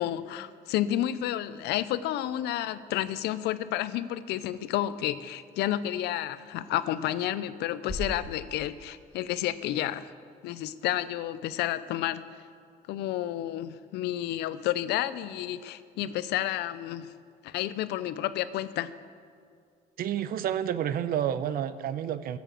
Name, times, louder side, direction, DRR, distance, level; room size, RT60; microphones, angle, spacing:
voice 1, 0.0-10.1 10.4-12.2 12.9-17.1 17.4-18.9, left 13 dB, 80° left, 15 dB, 0.6 m, -31 dB
sound 1, 7.9-10.0, equal, 15° left, 1.6 m, -40 dB
voice 2, 20.0-22.4, right 10 dB, 60° right, 14 dB, 0.7 m, -30 dB
14.5 x 7.2 x 7.5 m, 2.2 s
cardioid pair, 110°, 17 cm